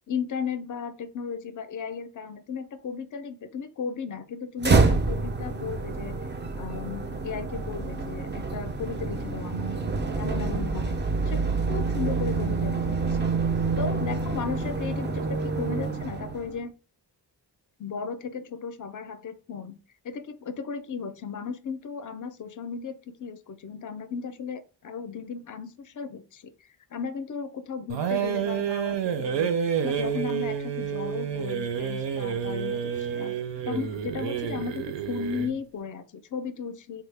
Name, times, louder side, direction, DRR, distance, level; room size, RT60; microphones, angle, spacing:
voice 1, 0.1-6.2 6.6-9.8 10.2-11.4 11.7-13.0 13.8-16.7 17.8-19.8 20.0-29.5 29.8-33.4 33.6-37.0, left 6 dB, 50° left, 12 dB, 0.4 m, -35 dB
sound 1, 4.6-16.6, right 4 dB, 30° right, 0.3 m, -27 dB
sound 2, 27.9-35.6, right 8 dB, 80° right, 0.6 m, -29 dB
3.3 x 2.1 x 3.3 m, 0.35 s
wide cardioid pair, 130°, 42 cm